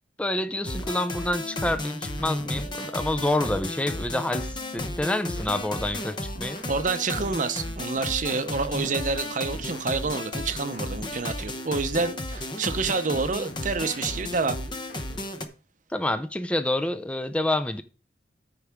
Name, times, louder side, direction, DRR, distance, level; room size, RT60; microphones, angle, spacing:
voice 1, 0.2-6.6 15.9-17.8, left 1 dB, 5° left, 0.4 m, -28 dB
sound 1, 0.6-15.4, left 1 dB, 25° left, 0.8 m, -33 dB
sound 2, 0.8-3.5 4.0-6.7 7.1-13.1 13.5-15.5, left 1 dB, 65° left, 1.8 m, -47 dB
voice 2, 6.7-14.6, right 4 dB, 45° right, 0.7 m, -28 dB
13.5 x 4.9 x 3.5 m
head